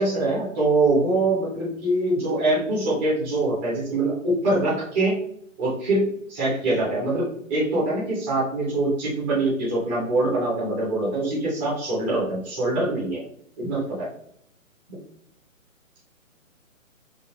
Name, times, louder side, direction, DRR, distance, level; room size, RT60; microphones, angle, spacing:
voice 1, 0.0-5.2 5.6-13.2 13.6-14.1 14.9-15.0, right 2 dB, 10° right, -8 dB, 0.6 m, -24 dB
5.5 x 2.0 x 3.2 m, 0.69 s
figure-of-eight pair, 135°, 41 cm